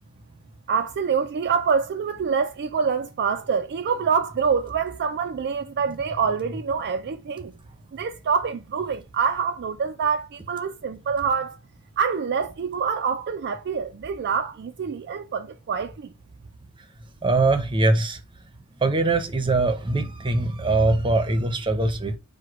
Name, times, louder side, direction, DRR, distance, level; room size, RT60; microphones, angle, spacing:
voice 1, 0.7-7.5 7.9-11.6 12.0-16.1, right 6 dB, 50° right, 0.4 m, -26 dB
voice 2, 17.2-18.2 18.8-22.2, right 2 dB, 20° right, 0.7 m, -22 dB
4.8 x 2.2 x 4.6 m
head